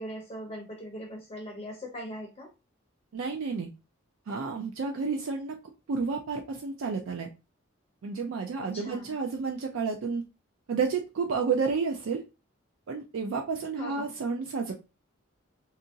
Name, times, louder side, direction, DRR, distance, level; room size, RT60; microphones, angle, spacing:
voice 1, 0.0-2.5 8.6-9.1 13.8-14.1, equal, 30° left, 1 dB, 0.5 m, -40 dB
voice 2, 3.1-3.7 4.3-5.6 5.9-7.3 8.0-10.2 10.7-12.2 12.9-14.7, right 5 dB, 70° right, 3 dB, 0.4 m, -30 dB
2.8 x 2.4 x 2.6 m, 0.28 s
head